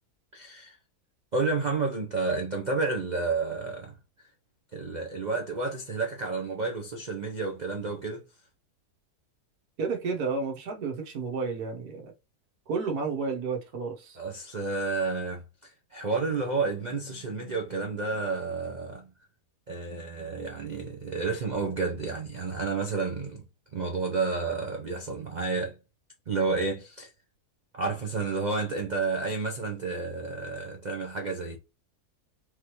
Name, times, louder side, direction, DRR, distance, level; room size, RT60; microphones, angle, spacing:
voice 1, 0.3-0.8 1.3-4.3 4.7-8.2 14.2-19.1 19.7-23.4 23.7-25.7 26.3-27.1 27.7-31.6, right 4 dB, 45° right, 0.6 m, -31 dB
voice 2, 9.8-12.1 12.7-14.2, right 4 dB, 70° right, 1.6 m, -31 dB
4.8 x 3.3 x 3.0 m
omnidirectional pair, 1.7 m